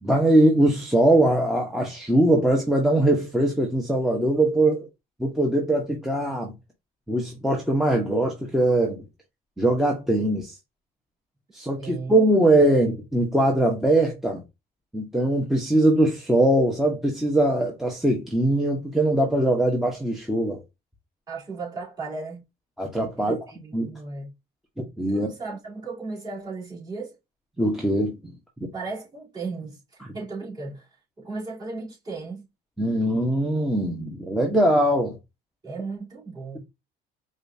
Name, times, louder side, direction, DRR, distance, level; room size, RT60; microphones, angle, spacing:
voice 1, 0.0-4.9 5.2-6.5 7.1-9.0 9.6-10.5 11.5-14.4 14.9-20.6 22.8-23.4 23.7-23.9 24.8-25.3 27.6-28.1 28.6-28.7 32.8-35.1, right 1 dB, ahead, 0.9 m, -21 dB
voice 2, 11.8-12.2 21.3-22.4 23.2-24.3 25.1-27.2 28.7-30.9 31.2-32.4 35.6-36.6, right 3 dB, 25° right, 2.5 m, -35 dB
4.9 x 2.4 x 2.6 m
cardioid pair, 110°, 17 cm